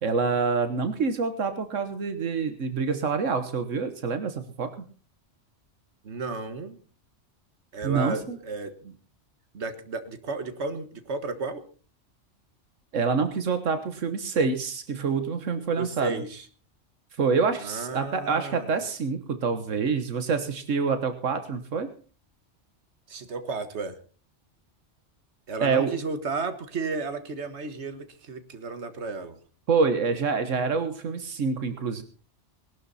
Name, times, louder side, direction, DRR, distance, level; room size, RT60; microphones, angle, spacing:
voice 1, 0.0-4.7 7.8-8.4 12.9-16.2 17.2-21.9 25.6-25.9 29.7-32.0, right 5 dB, 85° right, 9 dB, 1.6 m, -26 dB
voice 2, 6.0-6.8 7.7-9.0 9.5-11.6 15.8-16.4 17.6-18.7 23.1-24.0 25.5-29.4, right 4 dB, 65° right, 9 dB, 1.8 m, -33 dB
20.0 x 12.0 x 4.2 m, 0.39 s
omnidirectional pair, 1.3 m